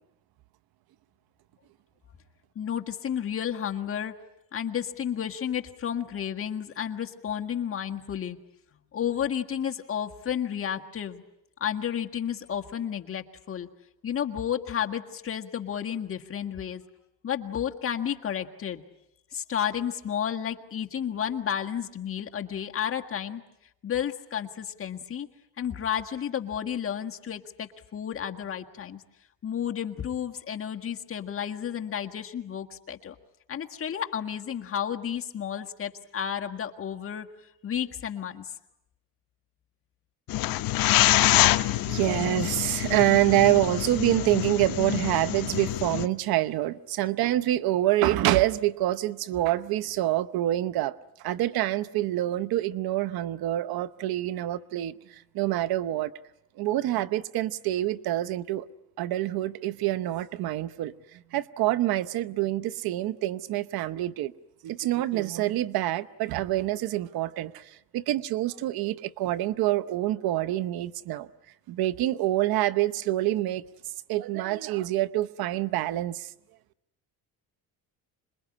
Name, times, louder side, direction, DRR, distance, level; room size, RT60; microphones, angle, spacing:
voice 1, 2.6-4.1 4.5-8.4 8.9-11.2 11.6-13.7 14.0-16.8 17.2-18.8 19.3-23.4 23.8-25.3 25.6-29.0 29.4-33.2 33.5-37.3 37.6-38.5, left 9 dB, 35° left, 1.6 m, -32 dB
sound 1, 40.3-46.1, left 16 dB, 60° left, 0.9 m, -25 dB
voice 2, 41.2-56.1 56.6-58.7 59.0-60.9 61.3-64.3 64.6-71.3 71.7-73.6 74.1-76.3, right 15 dB, 70° right, 0.9 m, -26 dB
26.5 x 21.5 x 9.7 m
cardioid pair, 125°, 38 cm